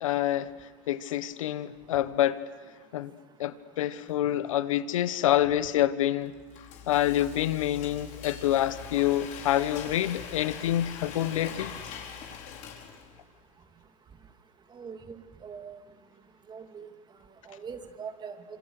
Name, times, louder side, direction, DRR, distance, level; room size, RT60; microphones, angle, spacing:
voice 1, 0.0-0.5 0.9-2.5 2.9-3.1 3.4-6.3 6.9-11.7, left 12 dB, 80° left, 1.2 m, -27 dB
Frying (food), 6.2-13.3, left 7 dB, 50° left, 4.9 m, -42 dB
voice 2, 14.7-15.8 16.5-16.9 17.5-18.4, right 6 dB, 25° right, 2.5 m, -42 dB
27.0 x 26.5 x 6.7 m
hypercardioid pair, 100°, 17 cm